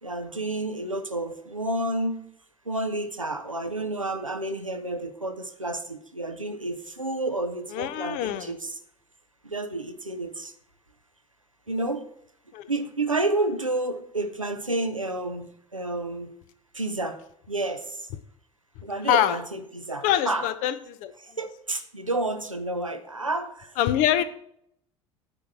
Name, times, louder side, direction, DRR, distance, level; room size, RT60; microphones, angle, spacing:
voice 1, 0.0-2.3 2.6-8.8 9.4-10.5 11.7-12.1 12.7-16.3 16.7-18.1 18.8-20.5 21.2-23.8 24.2-24.3, right 2 dB, 90° right, 7 dB, 0.8 m, -30 dB
voice 2, 7.7-8.5 12.5-12.7 19.1-19.4 20.0-20.8 21.0-21.1 23.8-24.2, left 11 dB, 50° left, 12 dB, 0.8 m, -24 dB
9.7 x 4.7 x 7.5 m, 0.71 s
figure-of-eight pair, 65°, 17 cm